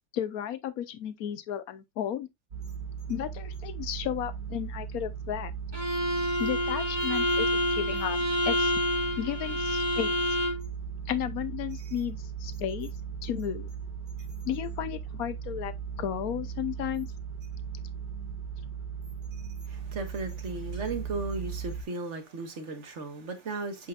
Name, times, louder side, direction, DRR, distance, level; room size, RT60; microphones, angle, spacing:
voice 1, 0.1-2.3 3.1-5.5 6.4-8.2 8.4-8.7 9.2-10.1 11.1-12.9 13.2-13.7 14.4-15.7 16.0-17.1, left 10 dB, 65° left, 1.2 m, -33 dB
sound 1, 2.5-21.8, right 7 dB, 65° right, 2.7 m, -38 dB
Bowed string instrument, 5.7-10.7, left 1 dB, 15° right, 1.7 m, -28 dB
voice 2, 19.7-23.9, right 3 dB, 50° right, 1.7 m, -36 dB
7.9 x 5.2 x 2.4 m
omnidirectional pair, 1.7 m